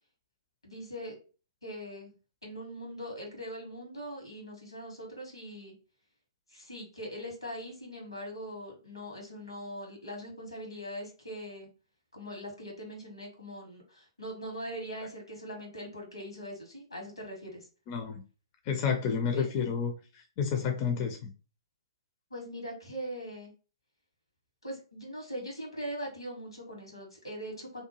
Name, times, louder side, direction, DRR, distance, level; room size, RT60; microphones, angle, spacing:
voice 1, 0.6-1.1 1.6-2.1 2.4-5.7 6.5-11.7 12.1-17.7 19.3-19.5 22.3-23.5 24.6-27.8, equal, 85° left, 1.4 m, -41 dB
voice 2, 17.9-18.2 18.6-21.3, left 6 dB, 30° left, 0.4 m, -30 dB
2.7 x 2.3 x 2.9 m
figure-of-eight pair, 120°, 3 cm